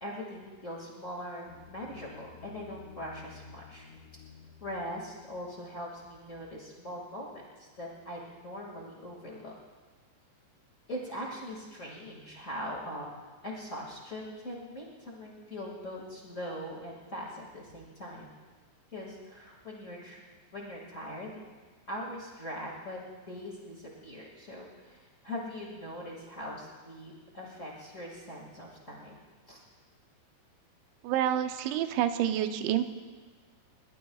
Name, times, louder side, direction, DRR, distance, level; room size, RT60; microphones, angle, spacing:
voice 1, 0.0-3.8 4.6-7.3 7.6-9.5 10.9-13.1 13.4-18.3 18.9-20.2 20.5-21.3 21.9-23.0 23.3-29.2 29.5-29.6, equal, 45° left, -3 dB, 0.9 m, -41 dB
sound 1, 1.5-5.9, left 7 dB, 70° left, 3.5 m, -53 dB
voice 2, 31.0-32.8, right 11 dB, 90° right, 8 dB, 3.1 m, -28 dB
21.0 x 20.5 x 2.4 m, 1.4 s
omnidirectional pair, 5.1 m